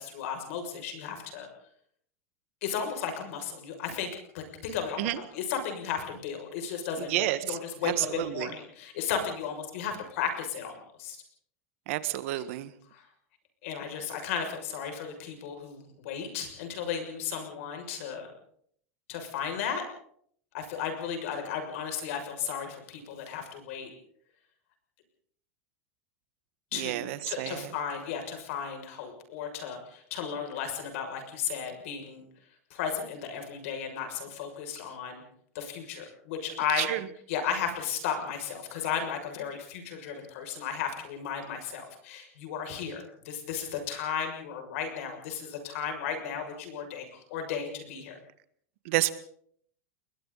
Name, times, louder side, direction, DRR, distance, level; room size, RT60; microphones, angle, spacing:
voice 1, 0.0-1.5 2.6-11.2 12.9-13.0 13.6-18.3 19.1-19.8 20.5-23.9 26.7-32.3 32.7-35.2 35.5-36.9 37.3-48.2, left 7 dB, 65° left, 5 dB, 6.6 m, -34 dB
voice 2, 7.1-7.6 7.8-8.5 11.9-12.7 26.7-27.7 36.8-37.0 48.8-49.1, right 16 dB, 60° right, 13 dB, 1.6 m, -30 dB
30.0 x 21.5 x 4.1 m, 0.62 s
supercardioid pair, 155°, 8 cm